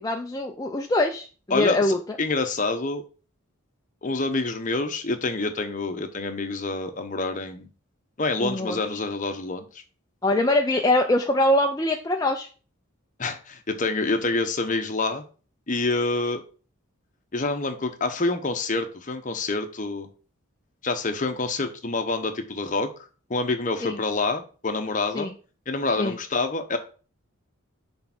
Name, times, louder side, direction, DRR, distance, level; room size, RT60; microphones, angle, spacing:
voice 1, 0.0-2.2 8.4-8.8 10.2-12.5 23.8-24.0 25.1-25.3 26.0-26.2, left 1 dB, 15° left, 2 dB, 0.4 m, -23 dB
voice 2, 1.5-3.0 4.0-7.7 8.2-9.8 13.2-15.2 15.7-16.4 17.3-20.1 20.8-22.9 23.3-25.3 25.7-26.8, left 3 dB, 35° left, 7 dB, 0.9 m, -27 dB
6.6 x 3.5 x 5.9 m, 0.37 s
head